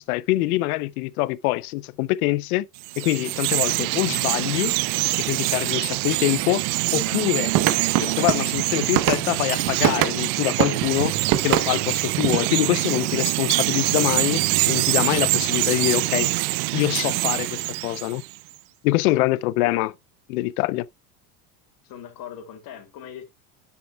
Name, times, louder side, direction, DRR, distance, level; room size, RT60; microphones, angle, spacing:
voice 1, 0.0-2.7 3.0-4.7 5.2-6.7 6.9-7.5 8.0-11.2 11.4-16.3 16.7-18.2 18.8-19.9 20.3-20.9, left 18 dB, 90° left, 0.6 m, -24 dB
Chirp tweet, 2.8-18.4, right 23 dB, 75° right, 0.5 m, -25 dB
voice 2, 6.9-7.4 19.0-19.3 19.6-19.9 21.8-23.2, left 9 dB, 55° left, 2.7 m, -41 dB
sound 1, 7.5-10.2 10.6-12.5, right 12 dB, 55° right, 1.1 m, -24 dB
9.9 x 7.3 x 2.3 m
supercardioid pair, 110°, 42 cm